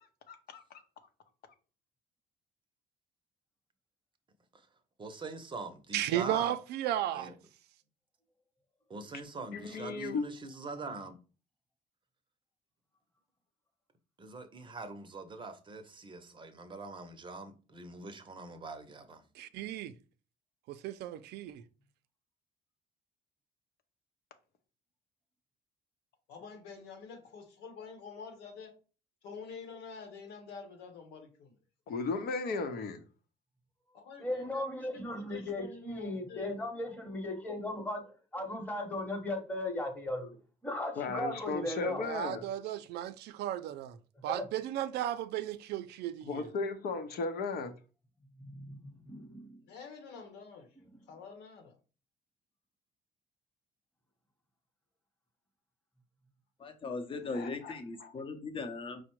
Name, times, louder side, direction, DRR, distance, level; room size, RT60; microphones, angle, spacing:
voice 1, 0.3-0.6 9.5-10.3 31.9-33.0 41.0-42.5 46.2-47.7 57.3-57.7 58.0-58.1, left 4 dB, 65° left, 0.8 m, -35 dB
voice 2, 5.0-6.5 7.1-7.3 8.9-11.2 14.2-19.2, right 3 dB, 30° right, 0.7 m, -43 dB
voice 3, 5.9-7.3 19.4-19.9 20.7-21.6 41.9-44.0 44.2-46.5, right 12 dB, 75° right, 0.4 m, -35 dB
voice 4, 26.3-28.7 29.2-31.6 33.9-36.5 49.6-51.8, left 5 dB, 90° left, 1.1 m, -48 dB
voice 5, 34.2-38.0 38.3-40.4 40.6-42.1 44.3-44.4 48.4-49.5, left 1 dB, 10° left, 1.1 m, -37 dB
voice 6, 56.6-59.0, left 3 dB, 30° left, 0.8 m, -39 dB
4.9 x 2.1 x 4.5 m
cardioid pair, 110°, 17 cm